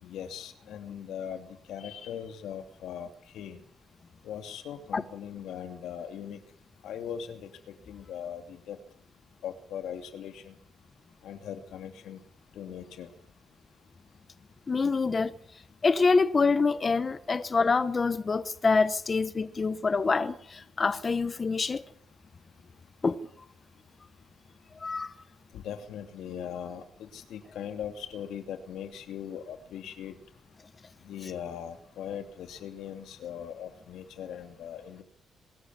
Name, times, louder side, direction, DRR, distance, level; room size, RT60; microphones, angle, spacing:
voice 1, 0.0-3.1 3.3-3.6 4.2-6.4 6.8-8.8 9.4-10.5 11.2-12.2 12.5-13.1 25.5-30.2 31.0-35.0, left 9 dB, 85° left, 2.7 m, -40 dB
voice 2, 14.7-15.3 15.8-21.8 23.0-23.2 24.8-25.1, left 4 dB, 25° left, 0.8 m, -26 dB
23.5 x 13.5 x 9.5 m
cardioid pair, 175°, 0 cm